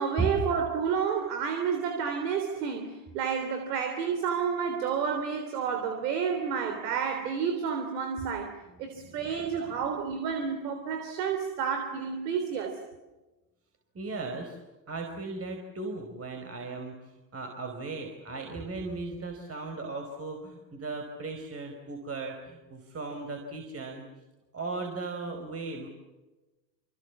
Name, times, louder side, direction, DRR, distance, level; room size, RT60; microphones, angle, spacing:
voice 1, 0.0-12.8, right 6 dB, 70° right, 3.6 m, -30 dB
voice 2, 8.9-9.8 13.9-14.6 14.9-24.0 24.5-25.9, right 3 dB, 30° right, 4.9 m, -37 dB
27.0 x 26.5 x 7.3 m
hypercardioid pair, 80°, 49 cm